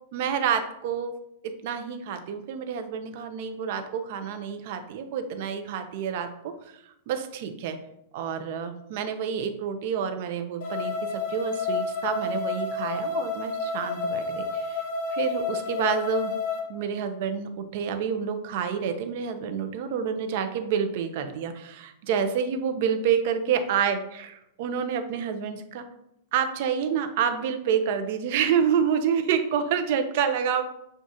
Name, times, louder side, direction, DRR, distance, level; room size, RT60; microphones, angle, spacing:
voice 1, 0.1-1.1 1.4-6.8 7.1-7.8 8.1-14.8 15.1-16.3 16.7-25.8 26.3-30.6, right 7 dB, 45° right, 8 dB, 0.5 m, -28 dB
sound 1, 10.6-16.6, left 4 dB, 55° left, 0.7 m, -30 dB
6.2 x 2.3 x 2.7 m, 0.79 s
supercardioid pair, 160°, 0 cm